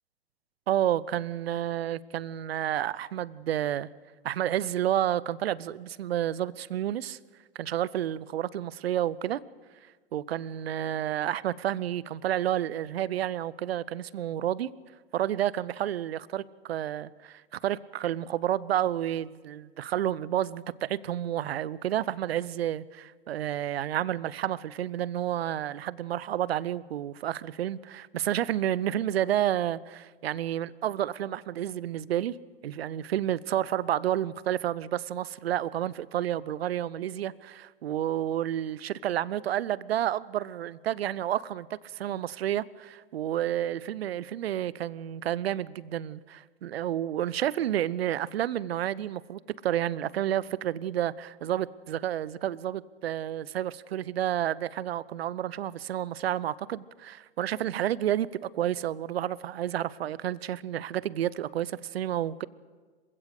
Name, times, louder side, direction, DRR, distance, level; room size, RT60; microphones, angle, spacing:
voice 1, 0.7-3.9 4.2-7.2 7.6-9.4 10.1-14.7 15.1-32.4 32.6-62.5, right 11 dB, 65° right, 0.8 m, -30 dB
26.5 x 16.0 x 6.5 m
figure-of-eight pair, 100°, 33 cm